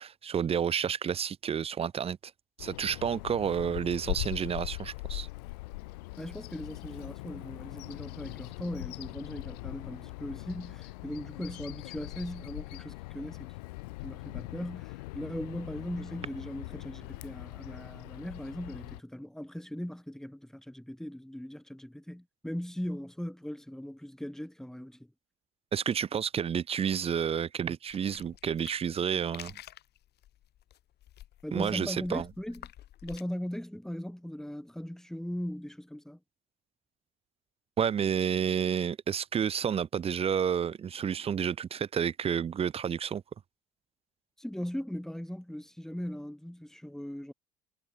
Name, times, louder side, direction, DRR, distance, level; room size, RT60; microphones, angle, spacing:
voice 1, 0.0-2.2 2.6-5.3 25.7-29.6 31.5-32.3 37.8-43.2, right 8 dB, 30° right, 0.5 m, -30 dB
Bird vocalization bird call bird song, 2.6-19.0, left 22 dB, 80° left, 0.9 m, -41 dB
voice 2, 6.2-13.5 14.0-25.1 31.4-32.7 33.0-36.2 44.4-47.3, equal, ahead, 2.2 m, -39 dB
sound 1, 27.9-33.2, left 13 dB, 55° left, 1.5 m, -50 dB
hypercardioid pair, 65°, 21 cm